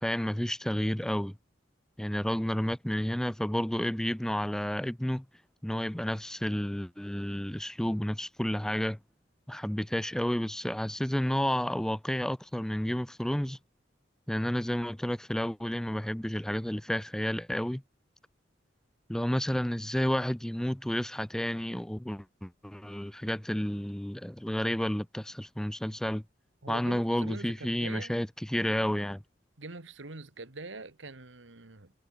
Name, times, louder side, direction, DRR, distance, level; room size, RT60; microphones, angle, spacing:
voice 1, 0.0-1.3 2.0-5.2 5.6-9.0 9.5-13.6 14.3-17.8 19.1-26.2 26.7-29.2, equal, 5° left, 0.3 m, -31 dB
voice 2, 26.6-28.2 29.6-31.9, right 3 dB, 85° right, 1.8 m, -44 dB
head